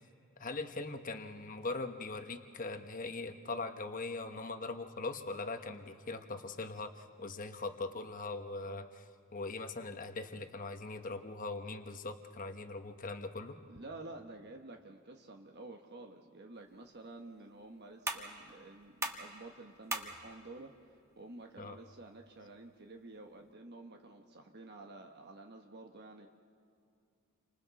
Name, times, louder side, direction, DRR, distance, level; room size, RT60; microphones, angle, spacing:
voice 1, 0.4-9.0 9.3-13.6 21.6-21.8, left 3 dB, 40° left, 7 dB, 1.1 m, -41 dB
voice 2, 13.7-20.7 21.2-26.3, right 2 dB, 50° right, 3 dB, 1.1 m, -50 dB
sound 1, 16.5-23.5, right 2 dB, 15° right, 1.2 m, -45 dB
30.0 x 26.0 x 4.1 m, 2.4 s
head